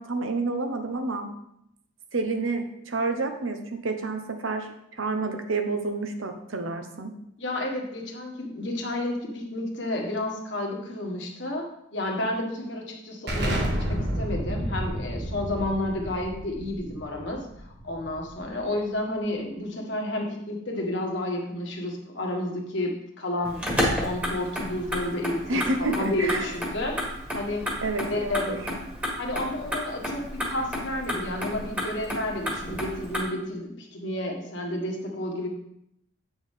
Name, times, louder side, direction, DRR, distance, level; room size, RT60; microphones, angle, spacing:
voice 1, 0.0-1.3 2.1-4.7 5.0-7.1 25.5-26.5 27.8-28.6, right 3 dB, 80° right, 6 dB, 1.0 m, -29 dB
voice 2, 7.4-23.6 24.0-27.0 27.3-27.6 28.0-28.7 29.2-35.5, left 1 dB, 60° left, 1 dB, 1.5 m, -31 dB
Explosion, 13.3-18.7, right 1 dB, 55° right, 1.5 m, -31 dB
Motor vehicle (road), 23.4-33.2, equal, 5° right, 1.5 m, -32 dB
8.4 x 6.1 x 3.6 m, 0.78 s
head